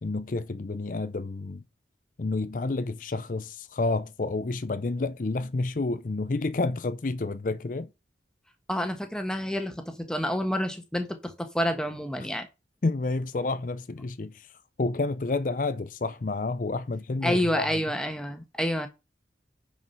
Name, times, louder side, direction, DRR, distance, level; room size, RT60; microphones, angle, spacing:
voice 1, 0.0-1.6 2.2-7.9 12.8-14.5 14.8-17.7, left 3 dB, 50° left, 0.5 m, -29 dB
voice 2, 8.7-12.5 17.2-18.9, equal, 5° left, 1.3 m, -28 dB
9.6 x 4.8 x 5.5 m
head